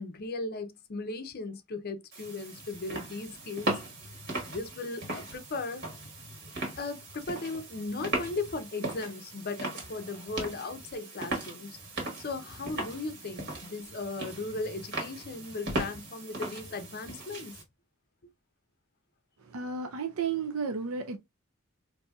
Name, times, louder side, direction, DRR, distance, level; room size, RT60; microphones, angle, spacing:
voice 1, 0.0-3.8 4.5-5.8 6.8-11.8 12.2-17.6, left 3 dB, 45° left, 0.5 m, -37 dB
sound 1, 2.1-17.6, right 2 dB, 50° right, 1.4 m, -38 dB
voice 2, 19.4-21.2, right 5 dB, 75° right, 0.5 m, -33 dB
4.0 x 2.7 x 2.2 m
head